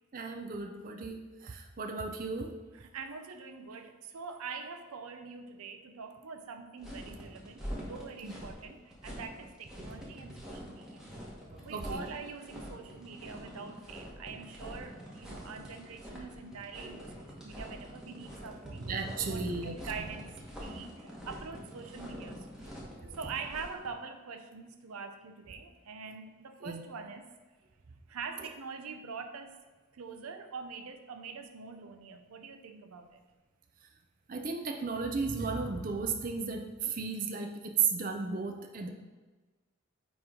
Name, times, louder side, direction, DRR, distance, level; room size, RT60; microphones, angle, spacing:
voice 1, 0.1-2.5 8.2-8.3 11.5-12.0 18.8-20.1 22.8-23.2 26.6-26.8 34.3-38.9, right 5 dB, 40° right, 3 dB, 0.5 m, -35 dB
voice 2, 2.7-11.1 11.6-18.9 19.2-22.5 22.9-27.3 28.1-29.5 29.9-33.2, right 5 dB, 90° right, 7 dB, 0.6 m, -44 dB
sound 1, 6.8-23.9, equal, 5° right, 1.1 m, -45 dB
9.2 x 3.1 x 3.7 m, 1.3 s
head